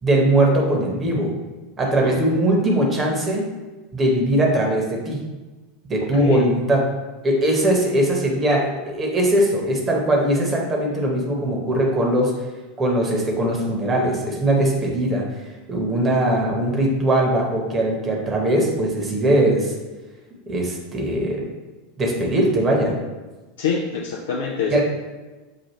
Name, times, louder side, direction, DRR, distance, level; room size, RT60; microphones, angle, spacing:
voice 1, 0.0-1.3 1.8-3.4 3.9-5.2 5.9-6.8 7.2-12.3 12.8-15.2 15.7-19.7 20.5-21.5 22.0-23.0 24.7-24.8, right 1 dB, 25° right, -1 dB, 1.1 m, -20 dB
voice 2, 23.6-24.8, left 5 dB, 65° left, -1 dB, 0.4 m, -25 dB
5.9 x 2.4 x 3.1 m, 1.2 s
figure-of-eight pair, 85°, 0 cm